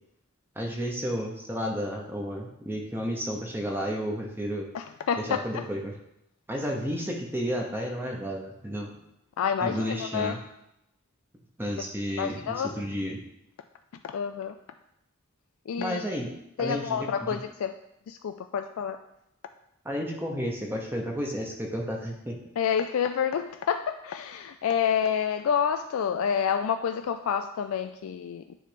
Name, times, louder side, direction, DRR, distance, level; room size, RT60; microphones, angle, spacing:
voice 1, 0.6-4.7 5.3-5.9 6.5-9.0 9.6-10.4 11.6-13.2 15.8-16.3 16.6-17.1 19.8-22.3, equal, 10° right, 0 dB, 0.9 m, -32 dB
voice 2, 4.7-5.7 9.4-10.3 12.2-12.8 14.0-14.5 15.7-16.1 16.6-17.7 18.1-19.0 22.6-28.6, left 7 dB, 80° left, 7 dB, 0.3 m, -28 dB
9.2 x 3.3 x 5.1 m, 0.82 s
head